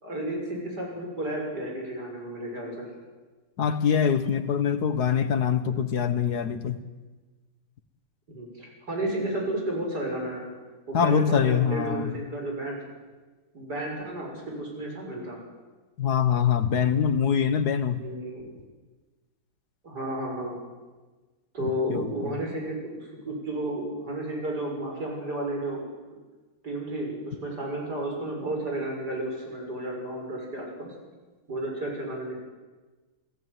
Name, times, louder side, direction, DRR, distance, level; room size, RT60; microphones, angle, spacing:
voice 1, 0.0-2.9 8.3-10.5 10.9-12.8 13.5-15.4 17.9-18.5 19.8-20.6 21.5-25.8 26.6-30.9 31.5-32.3, right 1 dB, 50° right, 0 dB, 7.3 m, -32 dB
voice 2, 3.6-6.8 10.9-12.2 16.0-18.1 21.6-22.4, left 7 dB, 55° left, 11 dB, 1.8 m, -24 dB
28.5 x 17.5 x 9.6 m, 1.3 s
omnidirectional pair, 2.2 m